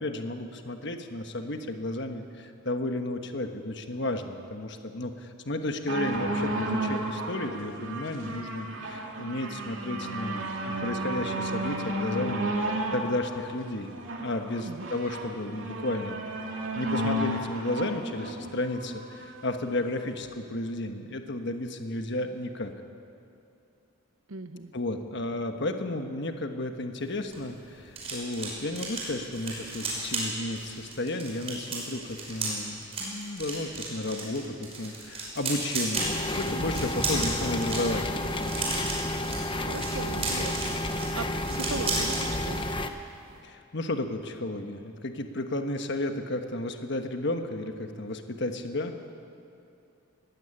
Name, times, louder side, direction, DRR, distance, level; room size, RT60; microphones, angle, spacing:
voice 1, 0.0-12.4 12.7-13.9 14.2-16.2 16.7-22.7 24.7-38.1 43.4-48.9, left 1 dB, 60° left, 6 dB, 1.3 m, -33 dB
sound 1, 5.9-19.4 20.2-20.3, right 1 dB, 65° right, 2.9 m, -33 dB
voice 2, 14.6-14.9 24.3-24.7 39.7-42.6, right 3 dB, 90° right, 11 dB, 0.9 m, -38 dB
sound 2, 27.0-42.2 42.5-42.8 43.1-43.3, right 3 dB, 30° right, 5.4 m, -34 dB
sound 3, 35.9-42.9, left 1 dB, 25° left, 0.9 m, -31 dB
21.0 x 15.5 x 9.0 m, 2.6 s
head